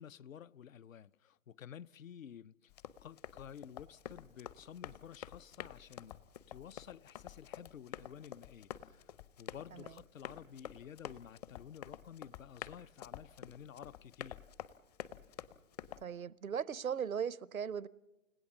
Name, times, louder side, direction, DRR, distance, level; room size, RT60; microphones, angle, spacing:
voice 1, 0.0-2.7 3.0-6.2 6.5-14.5, left 9 dB, 75° left, 0.7 m, -52 dB
Run, 2.7-16.0, left 10 dB, 30° left, 0.7 m, -49 dB
voice 2, 16.0-17.9, right 7 dB, 90° right, 0.8 m, -38 dB
30.0 x 16.5 x 7.1 m
figure-of-eight pair, 130°, 40 cm